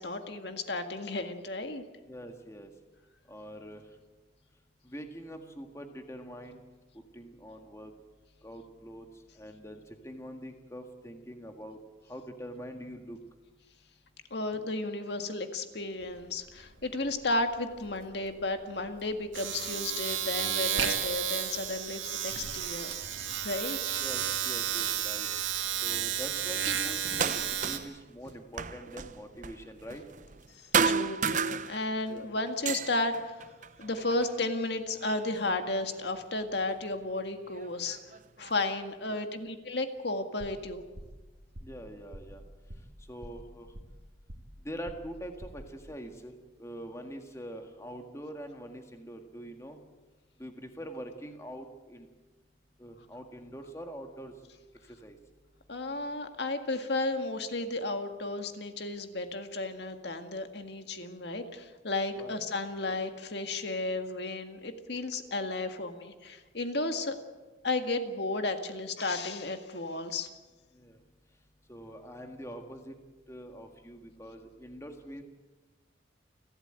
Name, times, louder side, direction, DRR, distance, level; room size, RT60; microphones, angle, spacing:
voice 1, 0.0-1.8 14.3-22.9 23.4-23.8 30.5-33.4 33.8-38.0 38.4-40.8 55.7-67.2 67.6-70.3, left 2 dB, 60° left, 6 dB, 1.8 m, -33 dB
voice 2, 2.1-2.7 3.3-3.9 4.8-6.6 6.9-7.9 8.4-9.1 9.4-11.8 12.1-13.2 24.0-25.3 25.8-30.0 32.0-32.3 39.1-39.2 41.6-42.4 43.1-43.7 44.6-46.3 46.6-49.8 50.4-52.1 52.8-54.3 54.9-55.2 62.2-62.4 62.9-63.0 70.7-71.0 71.7-73.0 73.3-75.2, equal, 15° left, 4 dB, 1.8 m, -44 dB
Domestic sounds home sounds, 16.0-16.2 16.5-27.8, right 9 dB, 90° right, 2.3 m, -32 dB
sound 1, 27.0-28.0 28.3-30.5 30.7-32.1 32.5-34.4 35.0-35.9 36.9-37.0 37.6-38.6, right 6 dB, 40° right, 0.7 m, -32 dB
sound 2, 40.4-40.7 41.0-41.2 41.6-41.8 42.1-42.4 42.7-43.0 43.2-44.0 44.3-44.6 44.9-45.2 45.4-45.7, equal, 65° right, 2.8 m, -46 dB
30.0 x 13.0 x 8.9 m, 1.2 s
head